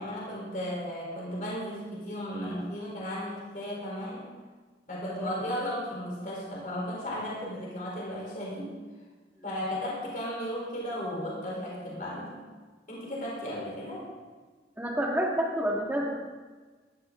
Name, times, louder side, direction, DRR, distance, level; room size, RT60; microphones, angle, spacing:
voice 1, 0.0-4.3 4.9-8.7 9.4-12.4 12.9-14.1, equal, 45° left, -4 dB, 4.1 m, -35 dB
voice 2, 14.8-16.1, equal, 10° right, -2 dB, 2.1 m, -29 dB
17.5 x 12.5 x 3.9 m, 1.4 s
head